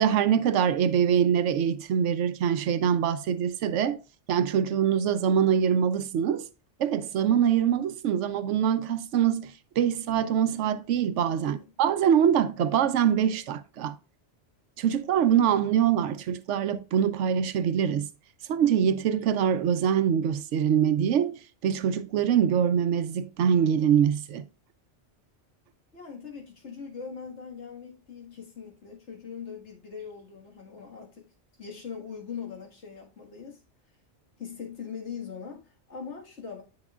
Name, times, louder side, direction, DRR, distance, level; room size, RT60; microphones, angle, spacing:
voice 1, 0.0-4.0 4.3-6.5 6.8-14.0 14.8-18.1 18.5-24.4, right 8 dB, 85° right, 1.0 m, -24 dB
voice 2, 11.4-11.7 25.9-31.3 31.6-33.6 34.4-36.6, left 6 dB, 70° left, 2.0 m, -41 dB
8.8 x 6.2 x 2.4 m
omnidirectional pair, 1.2 m